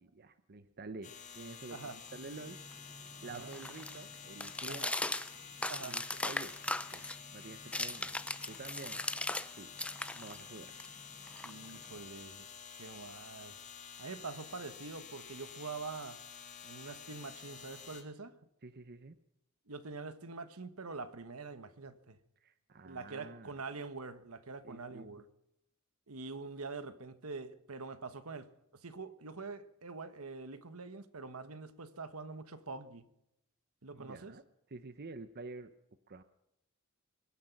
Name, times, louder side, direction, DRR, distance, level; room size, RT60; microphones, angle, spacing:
voice 1, 0.0-2.6 3.2-5.1 5.8-6.5 6.9-7.0 7.3-8.1 8.5-9.0 9.5-9.7 10.1-10.7 11.9-12.1 18.6-19.2 22.4-23.6 24.6-25.1 33.9-34.4 34.7-35.7 36.1-36.2, right 3 dB, 45° right, 0.8 m, -48 dB
sound 1, 1.0-18.0, left 7 dB, 35° left, 2.3 m, -50 dB
sound 2, 2.1-9.5 9.8-12.0, left 2 dB, 5° left, 0.6 m, -39 dB
voice 2, 5.7-6.0 11.4-12.5 12.8-13.6 14.0-16.2 16.6-18.4 19.7-22.2 22.8-25.3 26.1-28.5 28.8-33.1 33.8-34.3, right 4 dB, 75° right, 1.3 m, -45 dB
23.5 x 10.5 x 5.9 m
head